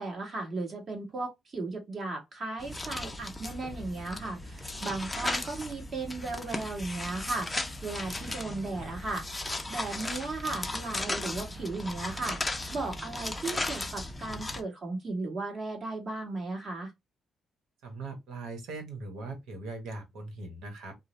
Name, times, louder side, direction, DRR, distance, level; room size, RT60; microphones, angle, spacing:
voice 1, 0.0-9.3 9.7-12.4 12.7-16.9, right 3 dB, 45° right, 1.4 m, -36 dB
sound 1, 2.6-14.6, left 2 dB, 15° left, 0.5 m, -36 dB
voice 2, 17.8-21.0, right 3 dB, 85° right, 1.0 m, -40 dB
2.6 x 2.0 x 3.0 m
cardioid pair, 90°, 0 cm